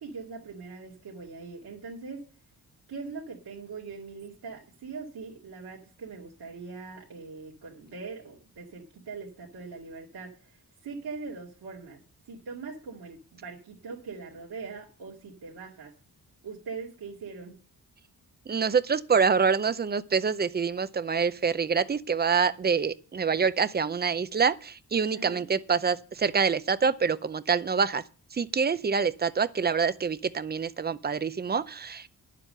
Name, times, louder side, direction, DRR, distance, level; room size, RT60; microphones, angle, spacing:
voice 1, 0.0-2.3 2.9-12.0 12.3-15.9 16.4-17.6 25.1-25.5, right 4 dB, 80° right, 2.2 m, -41 dB
voice 2, 18.5-28.0 28.3-32.1, right 5 dB, 25° right, 0.6 m, -26 dB
11.0 x 7.5 x 6.6 m
wide cardioid pair, 125°, 37 cm